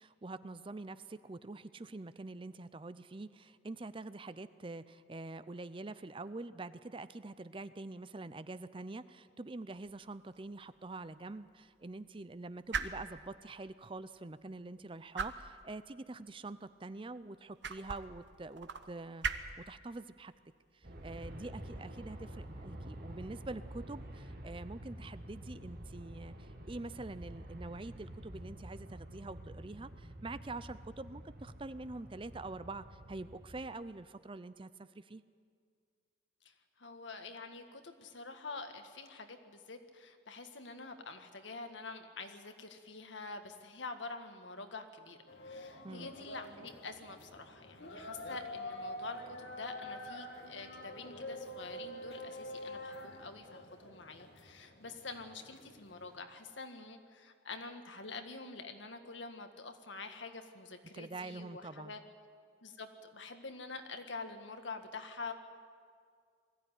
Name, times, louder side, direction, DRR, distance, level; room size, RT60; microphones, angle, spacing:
voice 1, 0.0-19.3 19.7-20.3 20.7-35.2 45.8-46.1 60.9-61.9, right 2 dB, 30° right, 14 dB, 0.5 m, -45 dB
sound 1, 9.7-23.3, right 5 dB, 70° right, 1.1 m, -45 dB
Aircraft, 20.8-33.6, right 1 dB, 50° right, 2.1 m, -48 dB
voice 2, 36.4-62.0 62.6-65.3, left 3 dB, 85° left, 7 dB, 1.8 m, -47 dB
sound 2, 45.3-56.2, left 1 dB, 65° left, 2.3 m, -47 dB
21.0 x 14.5 x 9.9 m, 2.1 s
head